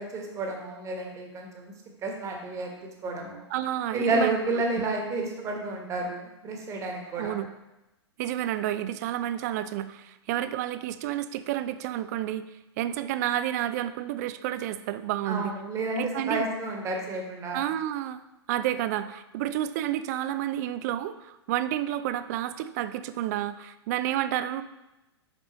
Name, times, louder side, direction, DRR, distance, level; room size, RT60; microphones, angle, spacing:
voice 1, 0.0-1.7 2.0-3.4 3.9-7.4 15.3-17.6, right 2 dB, 20° right, 1 dB, 1.3 m, -31 dB
voice 2, 3.5-4.4 4.8-4.9 7.2-7.5 8.2-12.4 12.8-15.5 16.0-16.5 17.5-18.2 18.5-24.6, right 12 dB, 35° right, 12 dB, 0.4 m, -30 dB
7.3 x 5.3 x 3.0 m, 0.97 s
figure-of-eight pair, 110°, 14 cm